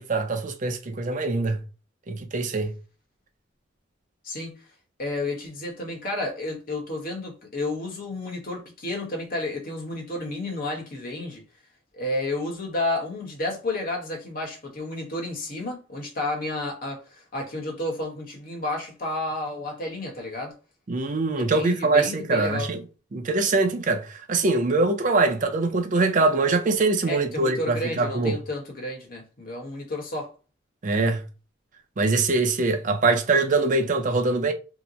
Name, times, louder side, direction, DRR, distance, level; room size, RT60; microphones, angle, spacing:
voice 1, 0.0-1.6 2.1-2.7 20.9-22.8 23.1-28.4 30.8-31.2 32.0-34.5, right 3 dB, 40° right, 0.5 m, -23 dB
voice 2, 4.2-4.6 5.0-11.4 11.9-20.5 21.3-22.7 27.0-30.3, left 2 dB, 45° left, 1.1 m, -31 dB
2.9 x 2.1 x 3.8 m
head